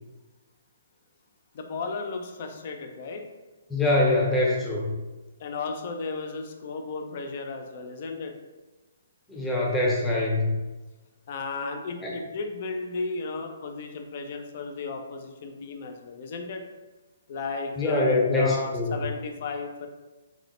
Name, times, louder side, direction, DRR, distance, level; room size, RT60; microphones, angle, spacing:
voice 1, 1.5-3.2 5.4-8.3 11.3-16.6 17.3-19.9, left 4 dB, 45° left, 5 dB, 0.4 m, -34 dB
voice 2, 3.7-4.9 9.3-10.5 12.0-12.1 17.8-19.0, left 2 dB, 10° left, -4 dB, 0.7 m, -24 dB
3.7 x 2.0 x 3.0 m, 1.2 s
figure-of-eight pair, 130°, 0 cm